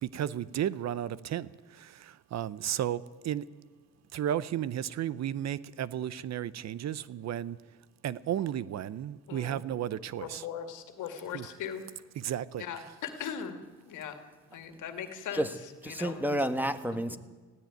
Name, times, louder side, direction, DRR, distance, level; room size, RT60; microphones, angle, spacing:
voice 1, 0.0-3.5 4.1-7.6 8.0-10.5 11.3-11.5 12.2-12.8, right 10 dB, 60° right, 18 dB, 0.8 m, -34 dB
voice 2, 9.3-9.6 10.2-11.8 12.6-13.6 13.8-14.2 14.5-15.4 15.9-16.4 16.9-17.0, left 8 dB, 80° left, 7 dB, 2.2 m, -39 dB
voice 3, 15.8-17.2, equal, 5° right, 10 dB, 1.4 m, -30 dB
19.5 x 15.5 x 9.3 m, 1.3 s
cardioid pair, 90°, 30 cm